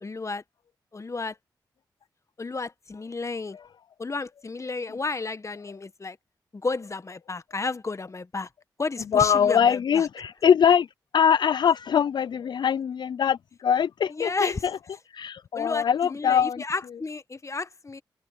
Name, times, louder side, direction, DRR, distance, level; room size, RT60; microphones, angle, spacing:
voice 1, 0.0-0.4 0.9-1.4 2.4-3.6 4.0-6.2 6.5-8.5 8.8-10.1 14.1-14.6 15.5-18.0, left 3 dB, 35° left, 1.2 m, -32 dB
voice 2, 9.1-10.9 11.1-14.7 15.1-16.6, left 8 dB, 65° left, 0.4 m, -22 dB
cardioid pair, 50°, 8 cm